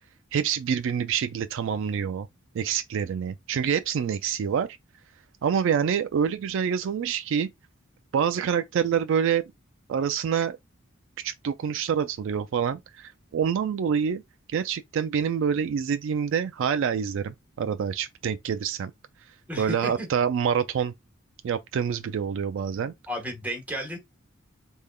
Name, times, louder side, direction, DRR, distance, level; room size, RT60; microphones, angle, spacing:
voice 1, 0.3-2.3 2.5-4.7 5.4-7.5 8.1-9.5 9.9-10.6 11.2-14.2 14.5-18.9 19.6-20.9 21.4-22.9, right 7 dB, 65° right, 0.3 m, -26 dB
voice 2, 19.5-20.1 23.1-24.0, equal, 10° right, 1.2 m, -33 dB
3.6 x 3.2 x 2.2 m
head